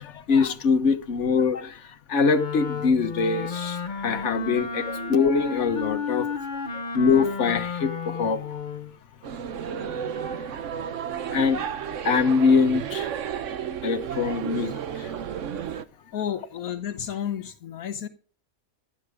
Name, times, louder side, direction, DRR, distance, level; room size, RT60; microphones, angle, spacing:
voice 1, 0.0-6.3 6.7-8.6 10.1-10.5 10.9-11.0 11.3-11.6 12.0-13.1 13.8-15.2, left 5 dB, 55° left, 1.5 m, -24 dB
Wind instrument woodwind instrument, 2.2-8.9, left 5 dB, 35° left, 1.0 m, -32 dB
sound 1, 9.2-15.8, right 8 dB, 65° right, 1.1 m, -32 dB
voice 2, 16.1-18.1, left 9 dB, 80° left, 1.3 m, -32 dB
16.5 x 12.0 x 3.7 m
omnidirectional pair, 1.5 m